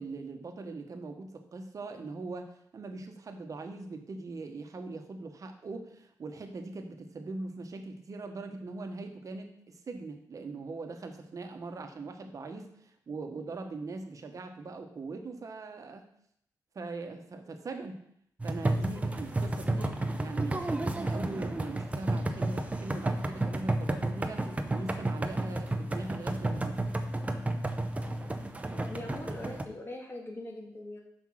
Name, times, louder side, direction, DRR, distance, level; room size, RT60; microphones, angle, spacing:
voice 1, 0.0-16.1 16.7-18.0 18.4-24.5 24.7-26.9, right 3 dB, 50° right, 6 dB, 1.1 m, -41 dB
sound 1, 18.4-29.6, right 2 dB, 20° right, 0.8 m, -32 dB
voice 2, 28.7-31.0, left 1 dB, 35° left, 0 dB, 2.2 m, -42 dB
5.7 x 5.3 x 6.3 m, 0.71 s
cardioid pair, 75°, 7 cm